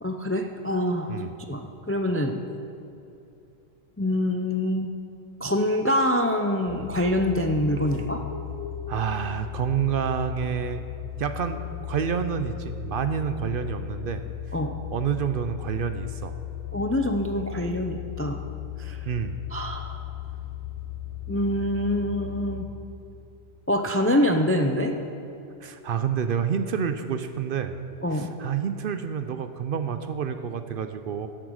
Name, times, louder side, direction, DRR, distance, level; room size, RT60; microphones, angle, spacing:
voice 1, 0.0-1.2 1.5-2.4 4.0-4.9 5.4-8.2 14.5-14.7 16.7-18.4 18.8-19.0 19.5-20.0 21.3-22.6 23.7-25.0 28.0-28.3, left 1 dB, 20° left, 5 dB, 0.3 m, -25 dB
sound 1, 6.7-22.7, left 12 dB, 85° left, 1.2 m, -36 dB
voice 2, 8.9-10.8 11.2-11.6 11.9-14.2 14.9-16.4 19.1-19.4 25.6-27.8 28.1-31.3, right 7 dB, 60° right, 9 dB, 0.7 m, -28 dB
12.0 x 7.6 x 6.3 m, 2.8 s
omnidirectional pair, 1.1 m